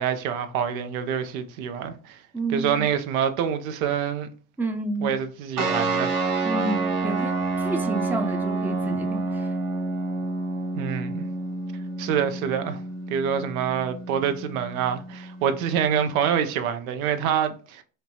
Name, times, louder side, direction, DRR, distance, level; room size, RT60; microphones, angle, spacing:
voice 1, 0.0-2.2 2.5-4.3 5.0-6.2 10.7-11.2 12.0-12.8 13.1-17.8, right 8 dB, 85° right, 0.6 m, -26 dB
voice 2, 2.3-2.9 4.6-5.2 6.4-9.5, right 2 dB, 5° right, 0.4 m, -30 dB
sound 1, 5.6-16.5, right 3 dB, 50° right, 0.9 m, -29 dB
4.3 x 2.0 x 2.7 m
supercardioid pair, 80°, 40 cm